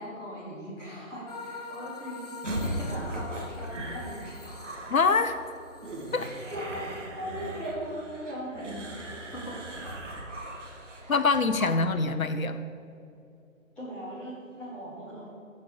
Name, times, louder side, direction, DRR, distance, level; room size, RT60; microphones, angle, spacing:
voice 1, 0.0-2.3 2.6-4.7 6.5-10.0 10.9-11.1 13.7-15.3, equal, ahead, -12 dB, 1.0 m, -39 dB
sound 1, 1.3-7.0, left 4 dB, 30° left, 0.7 m, -45 dB
sound 2, 2.4-11.1, right 1 dB, 60° right, 1.9 m, -38 dB
voice 2, 4.9-5.4 6.1-6.3 11.1-12.6, left 4 dB, 75° left, 11 dB, 0.7 m, -24 dB
sound 3, 7.5-8.0 9.1-9.2 10.2-10.3 10.5-11.8, right 1 dB, 30° right, 0.6 m, -45 dB
14.5 x 5.5 x 4.9 m, 2.7 s
figure-of-eight pair, 150°, 41 cm